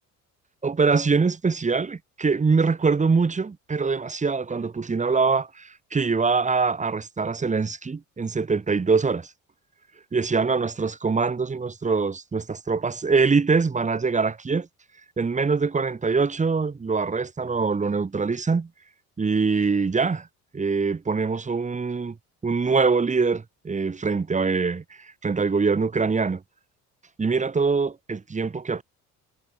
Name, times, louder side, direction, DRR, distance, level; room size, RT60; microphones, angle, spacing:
voice 1, 0.6-9.3 10.1-14.7 15.2-18.7 19.2-20.3 20.5-22.2 22.4-26.4 27.2-28.8, right 4 dB, 15° right, 1.1 m, -23 dB
figure-of-eight pair, 50°, 44 cm